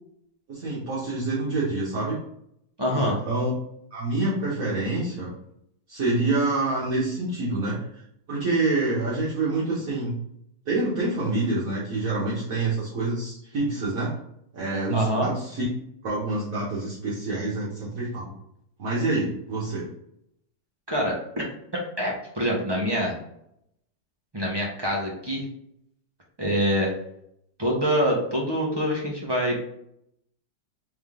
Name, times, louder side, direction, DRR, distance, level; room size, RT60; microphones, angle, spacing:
voice 1, 0.5-2.2 2.9-3.5 3.9-5.3 5.9-7.8 8.3-10.2 10.7-14.2 14.5-15.7 16.0-18.3 18.8-19.9, right 2 dB, 55° right, -8 dB, 1.4 m, -27 dB
voice 2, 2.8-3.2 14.9-15.3 20.9-21.1 21.7-23.1 24.3-25.4 26.4-26.9 27.6-29.6, equal, 25° right, -2 dB, 0.5 m, -25 dB
3.6 x 3.5 x 3.6 m, 0.75 s
omnidirectional pair, 1.9 m